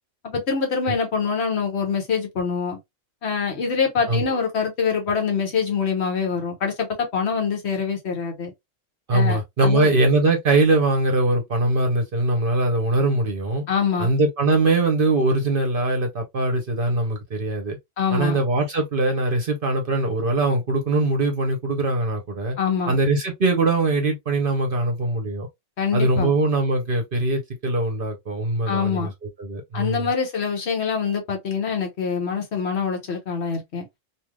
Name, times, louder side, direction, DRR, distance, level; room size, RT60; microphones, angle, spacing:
voice 1, 0.2-2.8 3.2-8.5 9.1-9.9 13.7-14.1 18.0-18.4 22.6-23.0 25.8-26.3 28.7-29.1 29.7-33.9, left 6 dB, 60° left, 1.2 m, -25 dB
voice 2, 4.1-4.4 9.1-13.6 14.0-17.8 18.1-22.6 22.9-25.5 25.9-29.1 29.4-30.0, right 2 dB, 50° right, 0.8 m, -22 dB
3.2 x 2.6 x 2.2 m
omnidirectional pair, 1.3 m